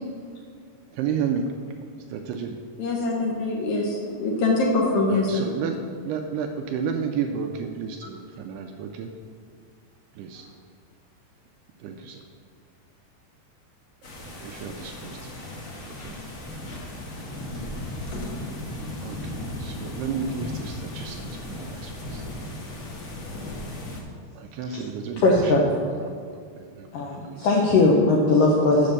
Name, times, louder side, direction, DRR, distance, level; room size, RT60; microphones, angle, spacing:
voice 1, 0.9-1.5 2.1-2.6 5.1-5.8 6.0-9.1 10.1-10.5 11.8-12.3 14.2-15.2 15.7-16.2 19.0-19.3 19.6-22.3 24.4-26.1 26.6-27.5 27.8-27.9, right 6 dB, 80° right, 3 dB, 2.4 m, -32 dB
voice 2, 2.8-5.4, left 2 dB, 70° left, -1 dB, 1.8 m, -24 dB
sound 1, 14.0-24.0, left 1 dB, 55° left, 1.4 m, -36 dB
voice 3, 25.2-25.6 26.9-28.9, left 2 dB, 85° left, -2 dB, 1.8 m, -19 dB
7.7 x 7.3 x 6.6 m, 2.2 s
omnidirectional pair, 5.1 m